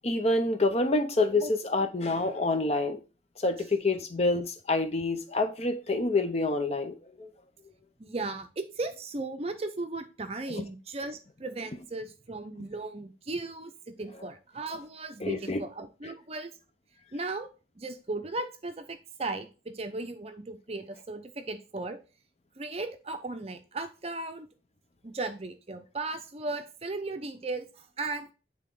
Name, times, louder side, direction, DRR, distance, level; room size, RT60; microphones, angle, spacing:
voice 1, 0.0-3.0 3.4-7.3 10.5-10.6 15.2-15.6, left 2 dB, 35° left, 0.7 m, -27 dB
voice 2, 8.0-16.5 17.1-17.5 17.8-22.0 22.6-24.5 25.0-28.3, right 2 dB, 30° right, 0.6 m, -36 dB
8.8 x 3.6 x 3.8 m
head